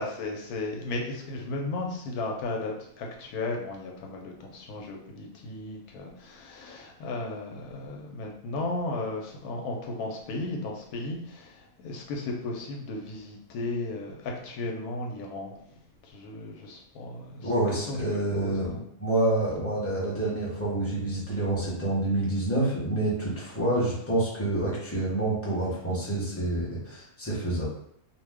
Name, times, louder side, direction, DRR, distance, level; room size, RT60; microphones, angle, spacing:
voice 1, 0.0-15.6 16.0-18.8 23.7-24.0, left 2 dB, 80° left, 0 dB, 1.1 m, -35 dB
voice 2, 17.4-27.7, right 1 dB, 15° left, -7 dB, 0.5 m, -28 dB
2.5 x 2.1 x 3.4 m, 0.72 s
omnidirectional pair, 1.6 m